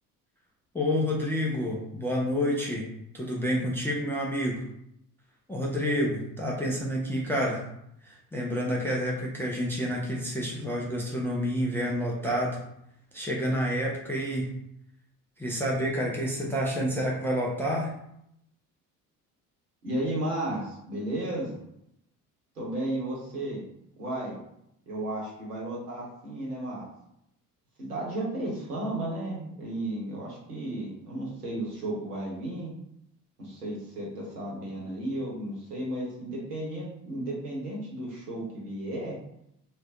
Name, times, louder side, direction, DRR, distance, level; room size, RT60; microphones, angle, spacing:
voice 1, 0.7-2.9 3.1-4.6 5.5-7.6 8.0-12.6 13.1-14.6 15.4-17.9, equal, 5° left, -4 dB, 0.3 m, -29 dB
voice 2, 19.8-21.6 22.5-23.6 24.0-24.4 24.9-26.8 27.8-32.7 33.4-39.2, right 1 dB, 80° right, -4 dB, 1.0 m, -33 dB
2.4 x 2.2 x 3.6 m, 0.77 s
figure-of-eight pair, 55°, 47 cm